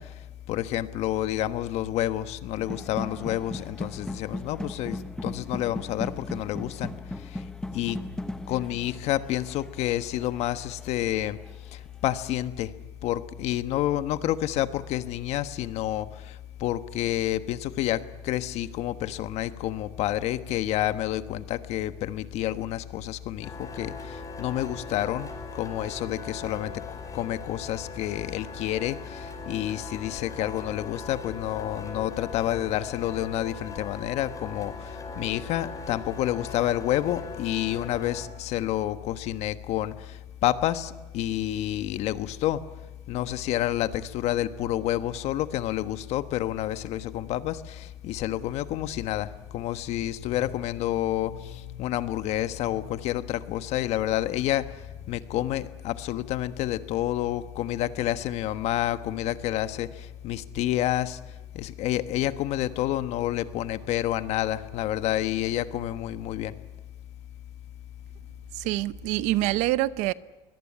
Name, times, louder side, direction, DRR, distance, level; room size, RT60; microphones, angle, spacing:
voice 1, 0.0-8.0 8.5-26.8 27.1-42.6 43.1-66.6, left 13 dB, 60° left, 1.3 m, -29 dB
sound 1, 2.6-11.5, left 1 dB, 5° left, 0.9 m, -38 dB
sound 2, 23.4-38.3, left 3 dB, 30° left, 5.5 m, -40 dB
voice 2, 68.5-70.1, right 17 dB, 75° right, 0.8 m, -26 dB
23.5 x 18.0 x 9.9 m
cardioid pair, 135°, 12 cm